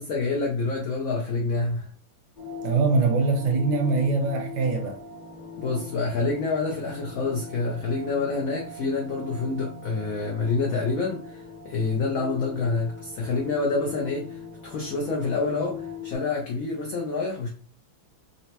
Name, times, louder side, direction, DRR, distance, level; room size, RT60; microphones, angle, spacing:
voice 1, 0.0-1.9 5.6-17.5, left 3 dB, 85° left, 0.7 m, -27 dB
sound 1, 2.4-16.2, left 4 dB, 40° left, 0.7 m, -41 dB
voice 2, 2.6-5.0, right 3 dB, 65° right, 1.1 m, -23 dB
3.9 x 2.1 x 2.8 m
omnidirectional pair, 2.2 m